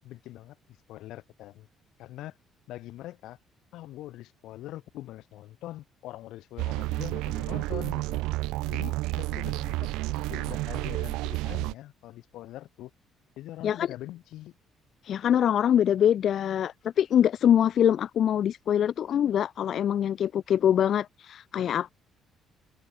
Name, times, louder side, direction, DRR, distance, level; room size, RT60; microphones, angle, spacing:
voice 1, 0.0-1.7 2.0-2.4 2.7-3.4 3.7-8.2 8.6-9.9 10.2-12.9 13.4-14.6, left 15 dB, 80° left, 8.0 m, -43 dB
sound 1, 6.6-11.7, right 20 dB, 90° right, 2.2 m, -30 dB
voice 2, 15.0-21.9, left 9 dB, 60° left, 2.2 m, -24 dB
supercardioid pair, 80°, 0 cm